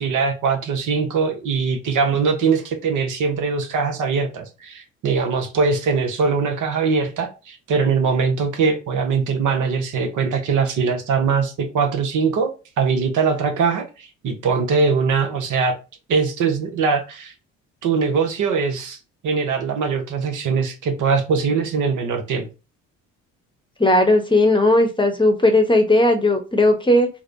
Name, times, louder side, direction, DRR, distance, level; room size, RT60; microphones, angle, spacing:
voice 1, 0.0-12.5 12.8-15.7 16.1-17.3 17.8-19.0 19.2-22.5, right 5 dB, 55° right, 0.9 m, -21 dB
voice 2, 23.8-27.1, left 1 dB, 15° left, 0.9 m, -16 dB
3.6 x 2.1 x 3.3 m
hypercardioid pair, 55°, 37 cm